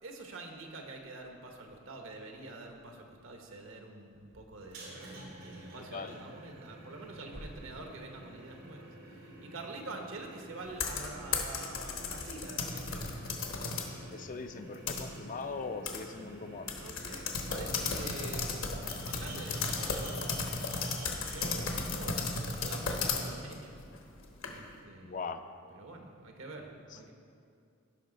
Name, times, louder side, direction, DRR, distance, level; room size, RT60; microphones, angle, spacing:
voice 1, 0.0-13.1 16.7-23.8 24.5-25.4 25.7-27.1, right 2 dB, 70° right, 3 dB, 1.1 m, -46 dB
sound 1, 4.6-24.0, right 1 dB, 85° right, 2.3 m, -50 dB
voice 2, 5.8-6.2 14.1-16.7 25.0-25.4 26.9-27.0, left 4 dB, 40° left, 8 dB, 0.4 m, -40 dB
sound 2, 10.7-13.9 14.4-15.4 15.9-16.0 16.2-16.3 16.7-24.8, left 4 dB, 75° left, 1.1 m, -35 dB
15.0 x 5.8 x 3.9 m, 2.4 s
head